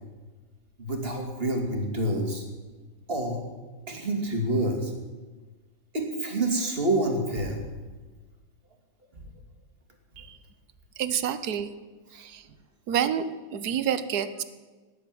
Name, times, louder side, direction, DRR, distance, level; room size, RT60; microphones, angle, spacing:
voice 1, 0.8-2.4 3.1-3.4 3.9-4.9 5.9-7.6 12.1-12.2, right 1 dB, 25° right, 2 dB, 2.8 m, -27 dB
voice 2, 11.0-11.7 12.1-12.5 12.9-13.2 13.5-14.4, right 9 dB, 55° right, 13 dB, 1.2 m, -28 dB
19.0 x 8.1 x 9.4 m, 1.3 s
omnidirectional pair, 2.4 m